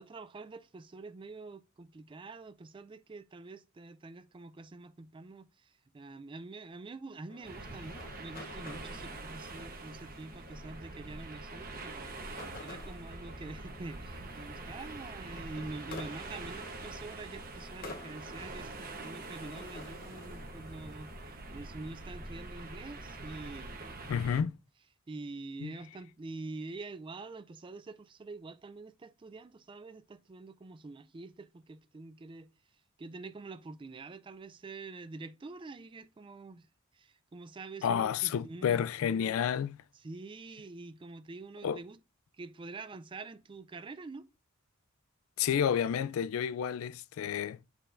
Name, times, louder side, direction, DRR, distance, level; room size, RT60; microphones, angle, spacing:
voice 1, 0.0-23.9 25.1-32.5 33.0-36.7 36.9-38.8 40.0-42.0 42.4-44.3, right 3 dB, 25° right, 0.3 m, -46 dB
sound 1, 7.3-21.1, left 2 dB, 45° left, 0.9 m, -51 dB
sound 2, 7.4-24.4, right 2 dB, 45° right, 1.0 m, -45 dB
voice 2, 24.1-24.5 25.6-25.7 37.8-39.8 41.6-41.8 45.4-47.6, left 8 dB, 70° left, 0.3 m, -30 dB
9.0 x 4.4 x 2.5 m
head